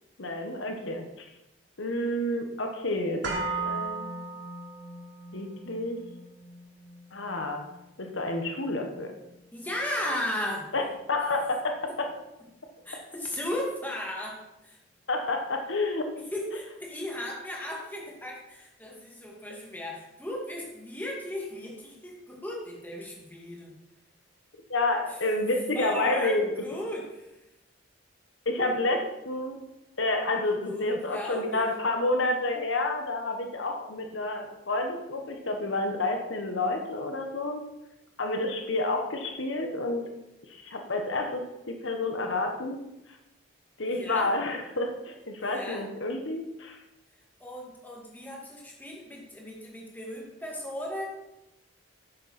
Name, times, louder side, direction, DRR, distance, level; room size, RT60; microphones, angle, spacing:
voice 1, 0.2-1.2 1.8-3.3 3.6-4.1 5.3-6.0 7.1-7.7 8.0-9.1 10.7-10.8 11.1-12.1 15.1-16.0 24.7-26.5 28.4-29.6 30.0-37.6 38.2-40.0 40.5-42.8 43.8-46.8, left 2 dB, 75° left, 4 dB, 1.4 m, -29 dB
sound 1, 3.2-11.3 11.6-11.7, right 3 dB, 60° right, 3.3 m, -39 dB
voice 2, 9.5-10.7 12.8-14.8 16.2-23.7 25.1-25.2 25.7-27.3 30.7-31.7 43.9-44.3 45.4-45.9 47.4-51.0, left 1 dB, 10° left, -2 dB, 2.3 m, -36 dB
12.5 x 9.7 x 4.4 m, 0.92 s
head